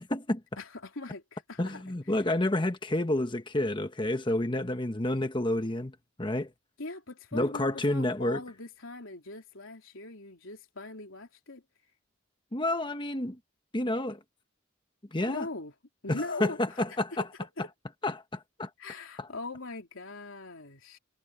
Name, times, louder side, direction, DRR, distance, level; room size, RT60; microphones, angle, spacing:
voice 1, 0.0-0.4 1.6-6.5 7.3-8.4 12.5-13.4 13.7-14.2 15.1-15.5 16.1-17.2 18.0-18.7 19.2-19.3, left 1 dB, 25° left, 1.1 m, -29 dB
voice 2, 0.6-2.0 6.8-11.6 15.3-15.7 16.0-17.3 17.6-17.7 18.8-21.0, left 2 dB, 75° left, 3.2 m, -41 dB
head